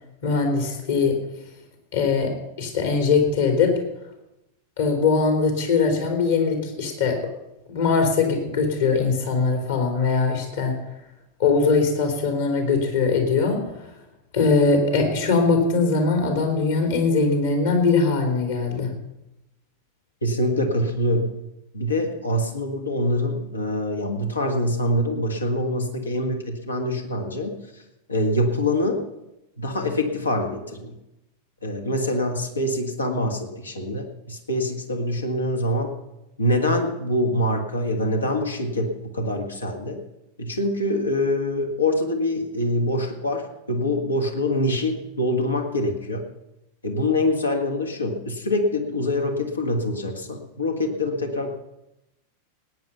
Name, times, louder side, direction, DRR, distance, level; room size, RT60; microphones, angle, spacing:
voice 1, 0.2-1.2 1.9-2.3 2.6-3.7 4.8-7.2 7.7-10.7 11.4-13.6 14.3-18.9, left 4 dB, 60° left, 2 dB, 3.8 m, -21 dB
voice 2, 20.2-21.3 21.7-27.6 28.1-29.1 29.6-30.9 31.6-36.0 36.4-40.0 40.4-46.2 46.8-51.6, left 1 dB, 75° left, 4 dB, 1.8 m, -25 dB
18.5 x 9.5 x 5.6 m, 0.92 s
figure-of-eight pair, 90°, 0 cm